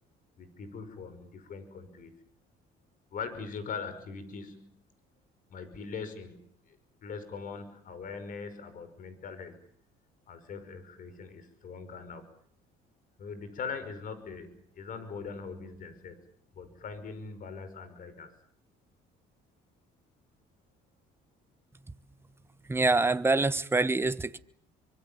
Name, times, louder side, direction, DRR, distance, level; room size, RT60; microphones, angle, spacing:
voice 1, 0.4-2.1 3.1-4.7 5.5-6.4 6.7-9.6 10.3-12.2 13.2-16.2 16.5-18.3, left 5 dB, 55° left, 5.5 m, -41 dB
voice 2, 22.7-24.4, right 3 dB, 15° right, 1.3 m, -25 dB
26.0 x 24.5 x 7.3 m
cardioid pair, 110°, 17 cm